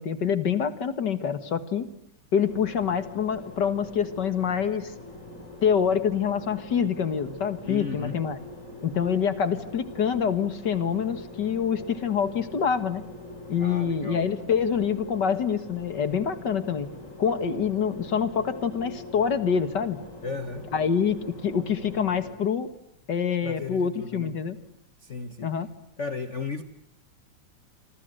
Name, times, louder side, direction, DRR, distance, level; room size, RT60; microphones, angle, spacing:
voice 1, 0.0-1.9 2.3-4.9 5.6-8.4 8.8-13.0 13.5-16.9 17.2-20.0 20.7-21.2 21.4-22.7 23.1-24.6 25.4-25.7, left 7 dB, 40° left, 12 dB, 1.8 m, -26 dB
sound 1, 2.5-22.3, left 2 dB, 25° left, 6.0 m, -43 dB
voice 2, 7.7-8.2 13.6-14.3 20.2-20.6 23.4-24.4 25.0-25.5 26.0-26.6, left 4 dB, 85° left, 10 dB, 0.6 m, -34 dB
27.0 x 26.0 x 7.8 m, 0.77 s
omnidirectional pair, 3.4 m